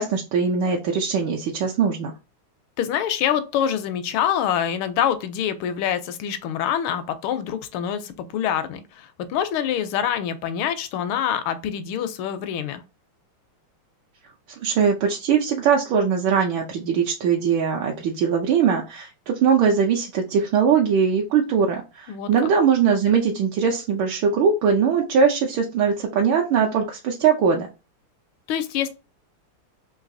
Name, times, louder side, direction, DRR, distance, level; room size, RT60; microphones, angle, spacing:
voice 1, 0.0-2.1 14.6-27.7, right 6 dB, 75° right, 1.3 m, -21 dB
voice 2, 2.8-12.8 22.1-22.5 28.5-28.9, left 9 dB, 80° left, 1.4 m, -25 dB
3.9 x 2.7 x 2.5 m
omnidirectional pair, 2.4 m